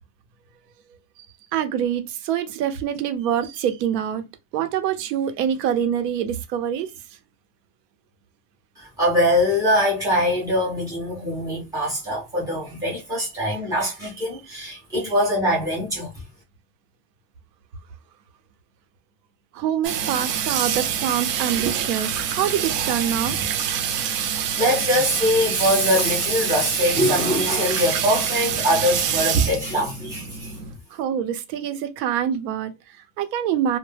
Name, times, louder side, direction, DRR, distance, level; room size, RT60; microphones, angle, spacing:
voice 1, 1.5-4.2 4.5-6.9 13.2-13.6 14.3-14.4 19.5-23.5 30.9-33.8, right 9 dB, 90° right, 0.8 m, -25 dB
voice 2, 8.8-16.1 24.2-30.5, equal, 10° right, 0.4 m, -23 dB
Water tap faucet / Sink (filling or washing), 19.8-30.7, right 8 dB, 55° right, 0.6 m, -26 dB
2.1 x 2.1 x 3.2 m
supercardioid pair, 175°, 48 cm